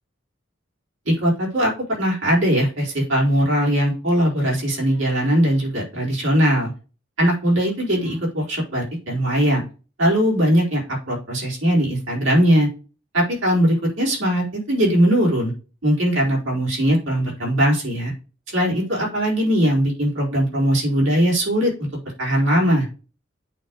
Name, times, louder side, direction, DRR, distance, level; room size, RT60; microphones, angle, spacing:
voice 1, 1.0-1.7 2.0-6.7 7.2-9.6 10.0-12.7 13.1-15.5 15.8-18.1 18.5-21.9 22.2-22.9, equal, 85° right, -4 dB, 4.6 m, -20 dB
8.7 x 3.4 x 6.4 m, 0.36 s
head